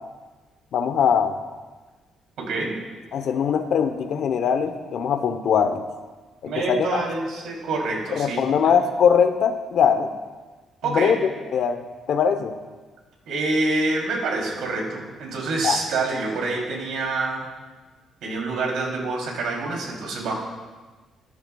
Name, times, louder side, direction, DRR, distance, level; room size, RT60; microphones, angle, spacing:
voice 1, 0.7-1.3 3.1-5.8 6.4-7.0 8.1-10.1 10.9-11.2 11.5-11.8 12.1-12.5 15.6-15.8, left 7 dB, 70° left, 8 dB, 0.9 m, -21 dB
voice 2, 2.4-2.7 6.4-8.7 10.8-11.2 13.3-17.4 18.2-20.3, right 3 dB, 85° right, -1 dB, 3.2 m, -26 dB
13.5 x 11.0 x 2.3 m, 1.3 s
cardioid pair, 90°, 0 cm